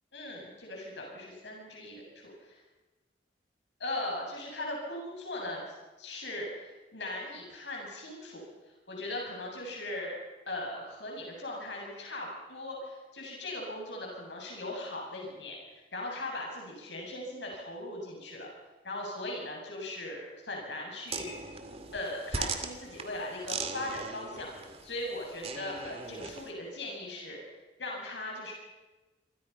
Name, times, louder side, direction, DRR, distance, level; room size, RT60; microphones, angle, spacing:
voice 1, 0.1-2.6 3.8-5.6 6.0-8.4 8.9-10.1 10.5-15.6 15.9-18.5 18.8-21.4 21.9-27.4 27.8-28.5, left 1 dB, 80° left, -1 dB, 7.6 m, -39 dB
sound 1, 21.1-26.5, right 4 dB, 35° right, 2.3 m, -39 dB
27.5 x 25.5 x 5.8 m, 1.2 s
head